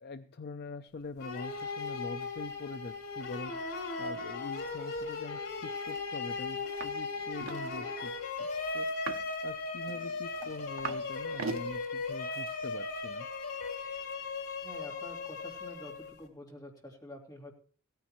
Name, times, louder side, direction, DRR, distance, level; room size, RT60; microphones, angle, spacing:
voice 1, 0.0-3.7 4.0-8.1 8.4-8.5 8.7-9.1 9.4-13.3, left 3 dB, 50° left, 10 dB, 0.5 m, -44 dB
sound 1, 1.2-16.3, left 3 dB, 85° left, 3.0 m, -37 dB
sound 2, 6.8-6.9 7.2-7.6 8.9-9.3 9.9-11.0 11.3-11.7 12.3-12.5, right 4 dB, 65° right, 0.8 m, -39 dB
voice 2, 14.6-17.5, left 1 dB, 20° left, 0 dB, 3.0 m, -48 dB
16.5 x 14.5 x 3.0 m, 0.43 s
head